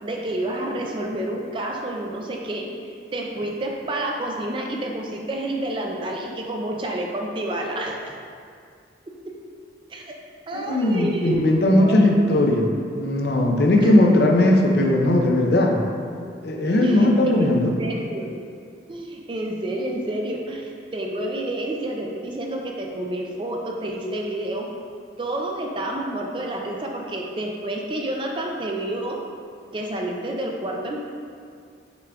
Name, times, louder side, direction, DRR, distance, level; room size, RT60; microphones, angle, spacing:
voice 1, 0.0-2.7 3.1-8.1 9.9-10.1 10.5-12.3 13.8-14.1 16.8-18.3 18.9-24.7 25.2-29.2 29.7-31.0, right 1 dB, 25° right, 0 dB, 0.4 m, -29 dB
voice 2, 10.5-12.7 13.0-15.8 16.4-17.7, left 1 dB, 65° left, 1 dB, 0.5 m, -18 dB
5.8 x 3.6 x 2.3 m, 2.2 s
head